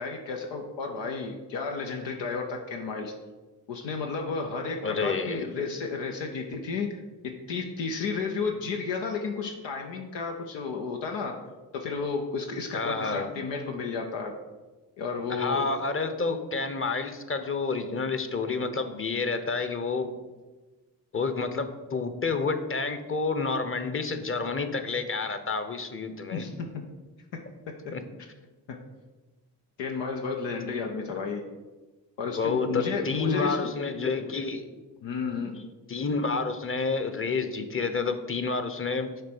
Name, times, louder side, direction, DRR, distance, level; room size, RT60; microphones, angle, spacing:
voice 1, 0.0-3.1 3.7-7.0 7.5-11.3 11.7-14.3 15.0-15.6 26.3-26.8 28.7-28.8 29.8-31.4 32.2-33.6 35.0-35.5, left 4 dB, 85° left, 2 dB, 0.7 m, -32 dB
voice 2, 4.8-5.5 12.7-13.3 15.3-20.1 21.1-26.5 27.9-28.0 32.2-34.7 35.3-35.4 35.9-39.2, left 4 dB, 30° left, 9 dB, 0.8 m, -29 dB
6.7 x 3.3 x 6.0 m, 1.2 s
supercardioid pair, 50°, 42 cm